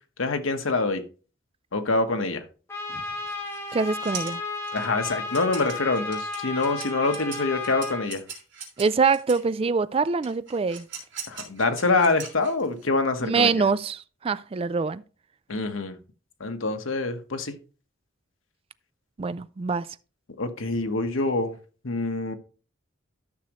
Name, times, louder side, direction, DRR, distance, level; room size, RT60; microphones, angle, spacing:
voice 1, 0.2-1.0 1.7-2.4 4.7-8.2 11.3-13.6 15.5-16.0 16.4-17.5 20.4-21.5 21.8-22.3, left 3 dB, 90° left, 1.2 m, -25 dB
Trumpet, 2.7-8.1, left 3 dB, 15° left, 1.8 m, -33 dB
sound 1, 3.3-9.5 10.2-12.8, right 6 dB, 60° right, 3.3 m, -41 dB
voice 2, 3.7-4.4 8.8-10.9 13.2-15.0 19.2-19.9, right 4 dB, 30° right, 0.3 m, -24 dB
12.5 x 6.2 x 3.0 m
head